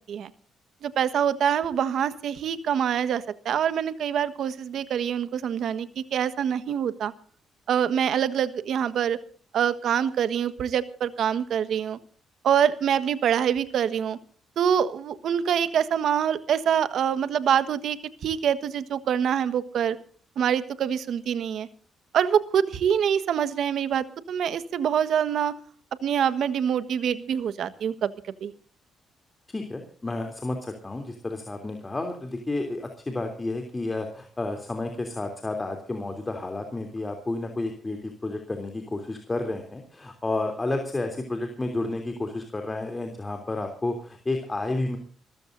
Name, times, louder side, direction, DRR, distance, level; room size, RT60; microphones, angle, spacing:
voice 1, 0.8-7.1 7.7-9.2 9.5-12.0 12.4-14.2 14.6-18.0 18.2-20.0 20.4-21.7 22.1-25.5 26.0-28.1 28.4-28.5, right 8 dB, 65° right, 13 dB, 1.4 m, -25 dB
voice 2, 29.5-45.0, left 2 dB, 20° left, 4 dB, 3.2 m, -31 dB
27.0 x 14.5 x 2.7 m, 0.43 s
cardioid pair, 90°, 0 cm